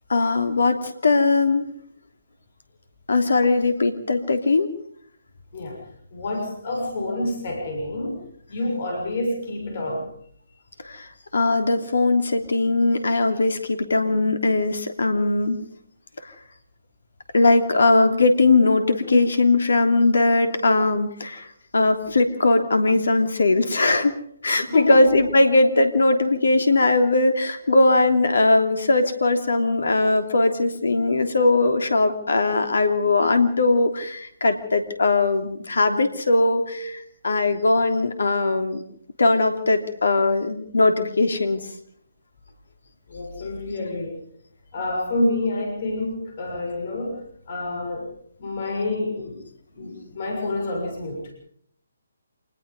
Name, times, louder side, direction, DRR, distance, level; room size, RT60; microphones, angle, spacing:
voice 1, 0.1-1.6 3.1-4.7 10.9-15.6 17.3-21.5 21.7-24.1 24.4-38.8 39.2-41.7, left 2 dB, 65° left, 7 dB, 3.0 m, -20 dB
voice 2, 5.5-5.9 6.1-10.1 24.7-25.2 43.1-44.2 44.7-48.1 48.4-49.4 49.7-51.3, left 2 dB, 45° left, 2 dB, 6.7 m, -28 dB
27.0 x 20.0 x 5.4 m, 0.64 s
figure-of-eight pair, 140°, 0 cm